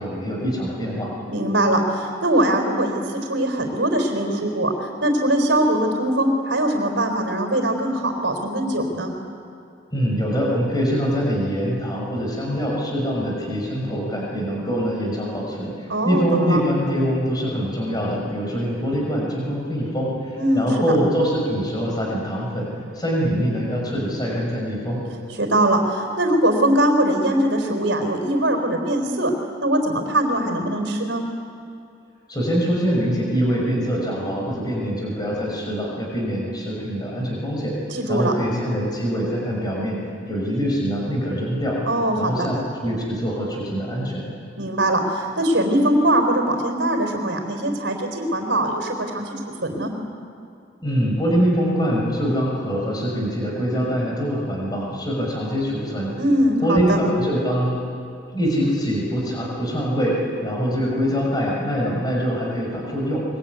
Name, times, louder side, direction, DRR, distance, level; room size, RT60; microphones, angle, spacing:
voice 1, 0.0-1.1 9.9-22.7 22.9-25.0 32.3-37.7 38.1-40.0 40.3-41.8 42.2-44.2 50.8-56.1 56.6-57.8 58.3-60.2 60.4-63.2, equal, 20° left, -2 dB, 6.1 m, -24 dB
voice 2, 1.3-9.1 15.9-16.6 20.4-20.7 25.4-29.3 29.6-31.2 37.9-38.3 41.9-42.5 44.6-49.4 49.6-49.9 56.1-57.0, right 1 dB, 70° right, 3 dB, 4.2 m, -21 dB
24.0 x 23.5 x 9.6 m, 2.6 s
head